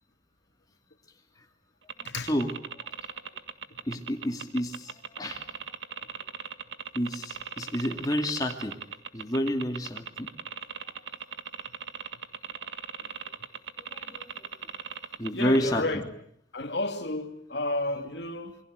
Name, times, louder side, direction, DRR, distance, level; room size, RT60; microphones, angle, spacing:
sound 1, 1.9-15.7, right 7 dB, 80° right, 1.8 m, -38 dB
voice 1, 2.0-2.5 3.9-5.5 6.9-8.8 9.1-10.3 13.9-14.5 15.2-16.0, equal, 20° left, 2.4 m, -30 dB
voice 2, 15.2-16.0 16.5-18.6, left 2 dB, 65° left, 2.7 m, -31 dB
28.0 x 23.5 x 8.0 m
head